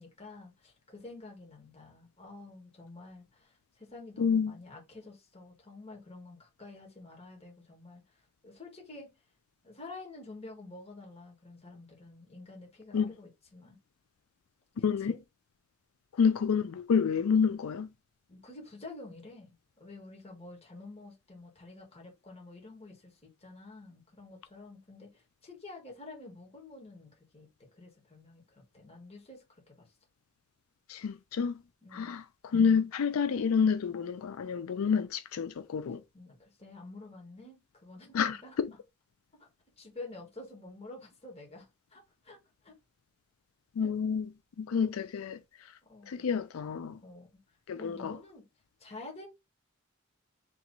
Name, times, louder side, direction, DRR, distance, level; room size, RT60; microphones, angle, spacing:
voice 1, 0.0-9.1 9.6-13.8 15.1-15.2 18.3-19.5 19.8-27.5 27.7-30.0 31.8-32.2 36.1-38.6 39.4-39.5 39.8-42.4 42.6-42.8 43.8-43.9 45.9-46.3 47.0-47.4 47.8-48.4 48.8-49.3, left 2 dB, 30° left, 1.7 m, -49 dB
voice 2, 4.2-4.5 12.9-13.1 14.8-15.2 16.1-17.9 30.9-31.6 31.9-36.0 38.1-38.7 43.7-44.3 44.6-45.7 46.1-47.0 47.7-48.2, left 6 dB, 90° left, 0.4 m, -29 dB
3.4 x 2.9 x 4.0 m
head